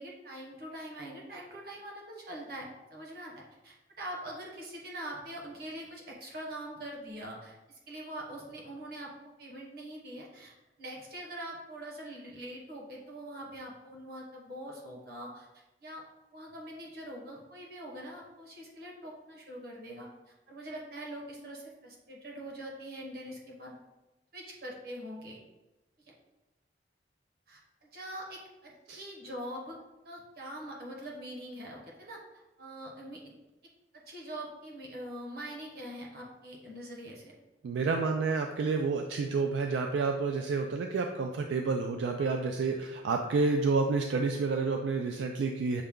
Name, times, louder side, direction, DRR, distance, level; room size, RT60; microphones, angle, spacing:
voice 1, 0.0-9.1 9.4-10.5 10.8-15.5 15.8-16.0 16.3-20.1 20.5-23.7 24.3-25.4 27.5-29.8 30.0-33.3 33.9-37.3, right 1 dB, 55° right, -2 dB, 1.0 m, -43 dB
voice 2, 37.6-45.8, right 4 dB, 80° right, 3 dB, 0.3 m, -29 dB
6.3 x 2.2 x 3.6 m, 1.0 s
head